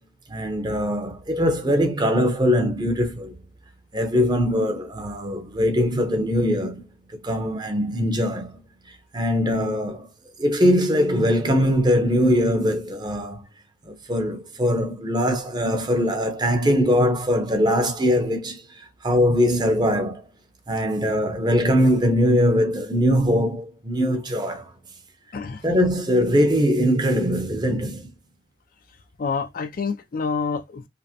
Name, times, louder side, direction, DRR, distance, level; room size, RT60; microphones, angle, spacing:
voice 1, 0.3-3.4 3.9-6.8 7.2-8.6 9.1-10.1 10.4-13.5 13.9-20.2 20.7-24.7 25.6-28.1, equal, 20° right, 0.7 m, -21 dB
voice 2, 25.3-25.7 29.2-30.9, left 5 dB, 45° left, 0.4 m, -27 dB
5.0 x 2.0 x 2.8 m
head